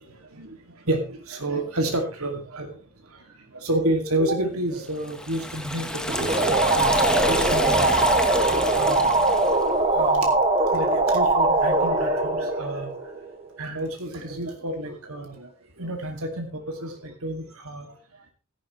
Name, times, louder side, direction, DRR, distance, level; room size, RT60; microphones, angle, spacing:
voice 1, 0.0-2.7 3.1-3.2 3.5-7.9 8.7-9.5 9.8-10.4 10.7-12.9 13.6-15.5 15.8-17.9, right 1 dB, 80° right, 3 dB, 2.5 m, -30 dB
Liquid, 5.0-9.7, left 1 dB, 5° left, 1.3 m, -29 dB
sound 1, 6.1-13.5, right 2 dB, 30° right, 1.9 m, -21 dB
16.0 x 11.0 x 3.2 m, 0.32 s
head